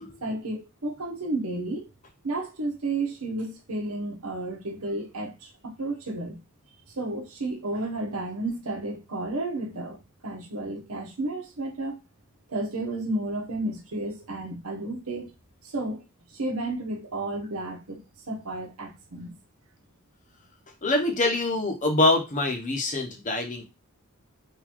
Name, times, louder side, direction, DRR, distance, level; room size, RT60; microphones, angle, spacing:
voice 1, 0.2-1.9 2.2-6.4 7.0-10.0 10.2-12.0 12.5-15.3 15.6-16.0 16.3-18.0 18.3-19.3, right 2 dB, 85° right, 1.0 m, -32 dB
voice 2, 20.8-23.7, left 2 dB, 35° left, 0.8 m, -25 dB
3.9 x 2.6 x 3.0 m
head